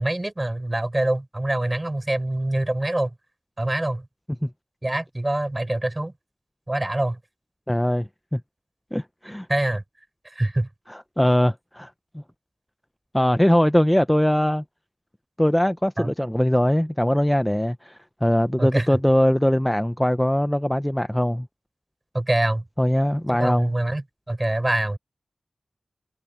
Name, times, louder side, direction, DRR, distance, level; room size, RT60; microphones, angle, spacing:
voice 1, 0.0-3.1 3.6-4.1 4.8-6.1 6.7-7.2 9.5-9.8 10.2-10.7 16.0-16.1 18.6-18.9 22.1-22.6 23.3-25.0, right 1 dB, 25° right, 5.7 m, -25 dB
voice 2, 7.7-8.4 8.9-9.5 10.9-12.2 13.1-14.6 15.4-21.5 22.8-23.7, equal, 5° left, 0.7 m, -21 dB
wide cardioid pair, 70°, 0 cm